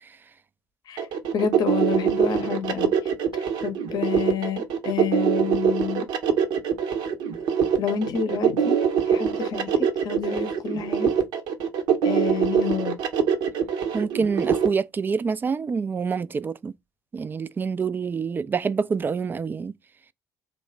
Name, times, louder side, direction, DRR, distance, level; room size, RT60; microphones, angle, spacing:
sound 1, 1.0-14.7, right 7 dB, 55° right, 0.7 m, -23 dB
voice 1, 1.3-3.1 3.6-6.1 7.8-8.8 9.0-11.1 12.0-13.0, left 7 dB, 45° left, 0.7 m, -29 dB
voice 2, 13.9-16.7 17.1-19.7, right 5 dB, 20° right, 0.3 m, -26 dB
3.0 x 2.1 x 4.1 m
figure-of-eight pair, 50°, 9 cm